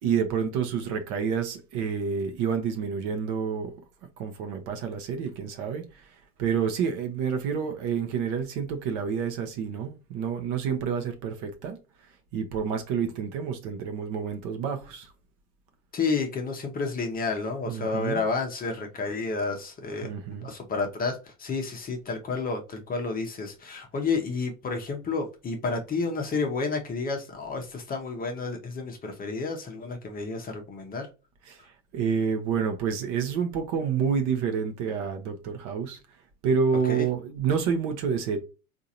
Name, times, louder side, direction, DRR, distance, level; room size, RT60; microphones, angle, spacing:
voice 1, 0.0-3.7 4.2-6.1 6.4-11.8 12.3-15.1 17.7-18.2 20.0-20.5 31.4-31.6 31.9-36.0 36.4-38.4, right 6 dB, 40° right, 0.8 m, -28 dB
voice 2, 15.9-20.1 20.4-31.1 36.9-37.0, left 4 dB, 20° left, 0.8 m, -30 dB
3.7 x 2.6 x 2.8 m
hypercardioid pair, 100°, 44 cm